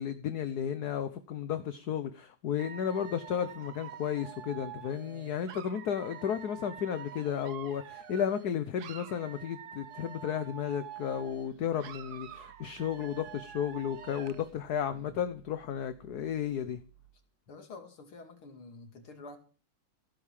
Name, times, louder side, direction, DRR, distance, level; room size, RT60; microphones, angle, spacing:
voice 1, 0.0-16.8, left 8 dB, 55° left, 1.3 m, -33 dB
Dog / Alarm, 2.6-8.5 8.8-11.5 11.8-14.5, right 9 dB, 55° right, 1.3 m, -47 dB
voice 2, 5.1-5.4 14.9-15.2 17.5-19.4, left 3 dB, 85° left, 3.3 m, -49 dB
sound 1, 11.1-17.3, right 11 dB, 90° right, 4.9 m, -60 dB
16.0 x 8.5 x 7.5 m
omnidirectional pair, 2.3 m